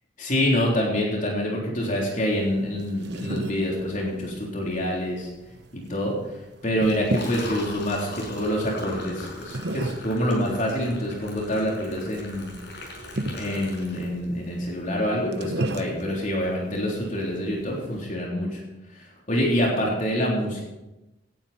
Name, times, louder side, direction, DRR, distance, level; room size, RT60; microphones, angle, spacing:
voice 1, 0.2-5.3 5.7-6.4 6.6-12.6 13.3-18.6 18.9-20.6, equal, 45° left, -3 dB, 3.6 m, -26 dB
sound 1, 2.2-18.1, right 1 dB, 65° right, 1.0 m, -36 dB
Liquid, 6.8-14.5, left 2 dB, 70° left, 5.6 m, -40 dB
18.0 x 11.5 x 4.4 m, 1.0 s
head